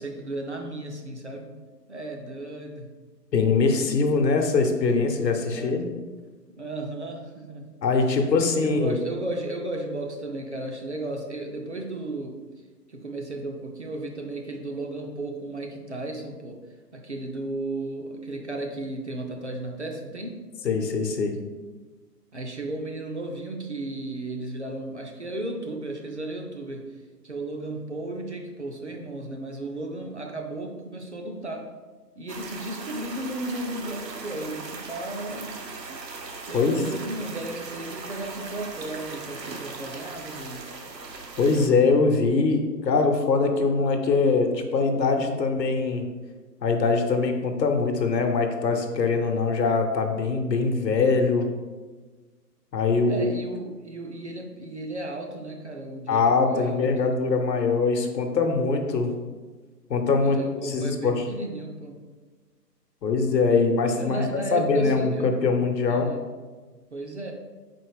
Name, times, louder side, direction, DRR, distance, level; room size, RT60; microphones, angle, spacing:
voice 1, 0.0-1.6 1.9-2.9 5.4-5.9 6.6-7.7 8.6-12.4 12.9-16.6 16.9-20.4 22.3-27.0 27.2-31.6 32.2-35.6 36.5-40.7 53.1-57.1 60.0-62.0 64.0-65.3 65.9-66.2 66.9-67.3, right 2 dB, 45° right, 2 dB, 0.5 m, -34 dB
voice 2, 3.3-5.8 7.8-9.0 20.6-21.3 36.5-36.8 41.4-46.1 46.6-51.5 52.7-53.3 56.1-59.1 59.9-61.2 63.0-66.1, left 4 dB, 85° left, 4 dB, 0.9 m, -23 dB
sound 1, 32.3-41.7, right 4 dB, 85° right, 0.9 m, -39 dB
4.2 x 3.8 x 3.3 m, 1.3 s
hypercardioid pair, 170°, 49 cm